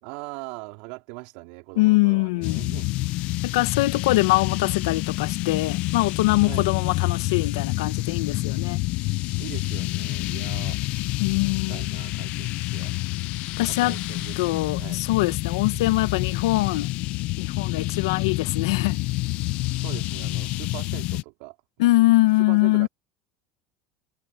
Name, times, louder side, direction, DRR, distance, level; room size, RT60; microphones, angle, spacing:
voice 1, 0.0-2.9 6.4-6.7 9.4-10.8 11.5-12.9 13.6-15.0 15.7-15.9 19.8-21.9 22.3-22.9, right 26 dB, 70° right, 4.5 m, -41 dB
voice 2, 1.8-2.6 3.4-8.8 11.2-11.9 13.6-13.9 14.4-16.9 17.4-19.0 21.8-22.9, left 19 dB, 85° left, 1.1 m, -23 dB
sound 1, 2.4-21.2, left 20 dB, 60° left, 0.8 m, -28 dB
supercardioid pair, 125°, 2 cm